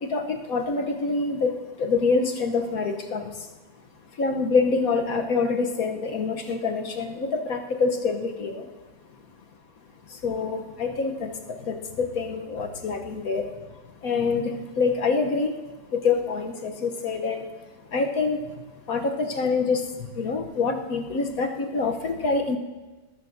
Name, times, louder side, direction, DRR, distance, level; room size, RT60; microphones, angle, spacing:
voice 1, 0.0-3.3 4.2-8.7 10.1-11.3 11.6-13.5 14.0-15.6 15.9-17.5 17.9-18.4 18.9-22.6, left 4 dB, 60° left, 4 dB, 1.1 m, -26 dB
19.0 x 14.0 x 2.6 m, 1.2 s
omnidirectional pair, 2.1 m